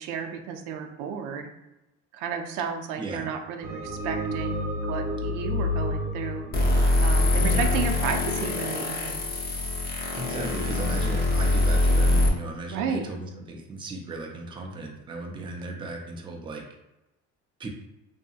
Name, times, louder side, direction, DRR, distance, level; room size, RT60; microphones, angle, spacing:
voice 1, 0.0-1.5 2.1-6.5 7.0-9.2 12.7-13.1, right 6 dB, 85° right, 4 dB, 0.5 m, -32 dB
voice 2, 3.0-3.3 7.4-7.8 10.2-16.6 17.6-17.7, right 2 dB, 15° right, 1 dB, 0.4 m, -36 dB
sound 1, 3.6-8.0, left 1 dB, 55° right, 0.8 m, -31 dB
sound 2, 6.5-12.3, left 2 dB, 30° left, 0.7 m, -23 dB
2.7 x 2.7 x 2.3 m, 0.96 s
cardioid pair, 125°, 30 cm